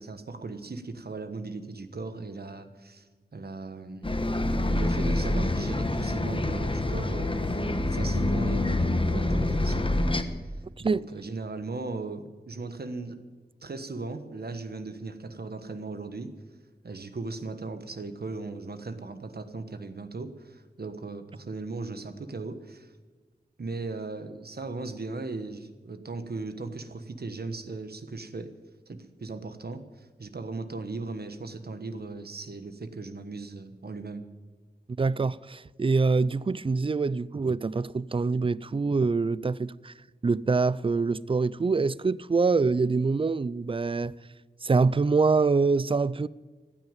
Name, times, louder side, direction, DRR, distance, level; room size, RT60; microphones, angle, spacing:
voice 1, 0.0-3.1 3.3-4.2 4.6-9.9 10.8-13.2 13.6-16.3 16.8-22.9 23.6-28.5 28.9-34.2, right 3 dB, 65° right, 1.3 m, -37 dB
Bus, 4.0-10.2, left 1 dB, 30° left, 1.2 m, -26 dB
voice 2, 35.0-39.9 40.2-44.1 44.6-46.3, right 4 dB, 30° right, 0.4 m, -25 dB
15.0 x 9.6 x 9.0 m
wide cardioid pair, 75°, 18 cm